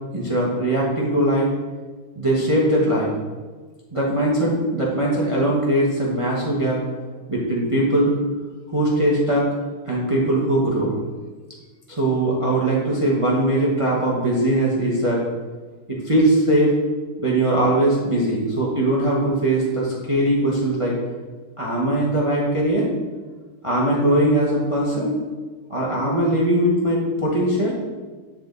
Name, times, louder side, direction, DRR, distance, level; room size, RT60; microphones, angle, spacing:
voice 1, 0.1-1.5 2.1-3.1 3.9-6.8 7.3-8.1 8.7-9.5 9.9-10.9 11.9-15.2 15.9-16.7 17.2-20.9 21.6-22.9 23.6-25.1 25.7-27.8, right 1 dB, 20° right, -5 dB, 0.9 m, -20 dB
9.5 x 4.4 x 4.0 m, 1.4 s
omnidirectional pair, 2.3 m